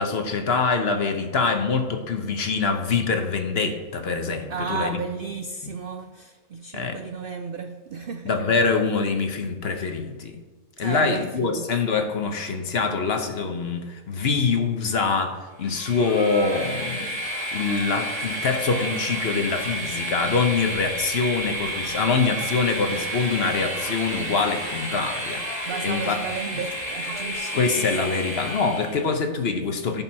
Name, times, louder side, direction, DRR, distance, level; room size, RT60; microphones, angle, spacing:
voice 1, 0.0-5.0 5.6-5.7 6.7-7.0 8.2-10.4 10.8-17.1 17.5-26.2 27.5-30.0, left 4 dB, 50° left, 5 dB, 0.9 m, -24 dB
voice 2, 4.5-8.3 10.8-11.7 25.6-28.4, right 5 dB, 75° right, 7 dB, 0.5 m, -34 dB
Train, 15.6-29.1, right 1 dB, 30° right, 2.0 m, -31 dB
15.0 x 5.4 x 2.8 m, 1.4 s
omnidirectional pair, 1.5 m